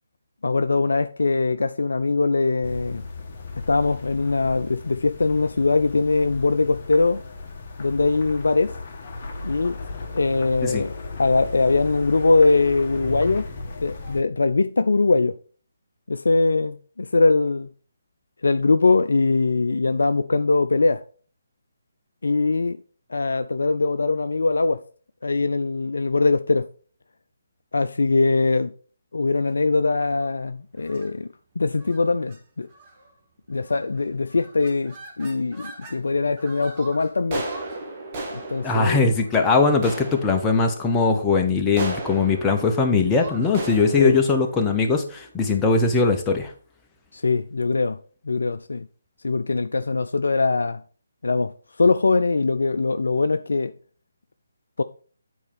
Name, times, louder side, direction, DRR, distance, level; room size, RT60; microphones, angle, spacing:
voice 1, 0.4-3.0 3.7-7.2 7.8-8.8 9.4-9.8 10.1-13.5 13.8-15.4 16.1-17.7 18.4-21.0 22.2-22.8 23.1-24.8 25.2-26.7 27.7-28.7 29.1-31.3 31.6-32.7 33.5-37.5 38.5-39.0 44.0-44.2 47.1-48.0 48.3-48.9 49.2-50.8 51.2-51.5 51.8-53.7 54.8-54.9, left 3 dB, 70° left, 0.4 m, -21 dB
sound 1, 2.6-14.2, left 3 dB, 35° left, 1.3 m, -36 dB
sound 2, 29.9-30.3 30.8-31.1 31.8-32.0 32.3-32.4 32.7-33.1 33.7-34.0 34.3-36.0 36.4-45.5, right 2 dB, 25° right, 1.6 m, -37 dB
voice 2, 38.6-46.5, left 4 dB, 10° left, 0.9 m, -20 dB
8.5 x 4.3 x 5.1 m
figure-of-eight pair, 150°, 0 cm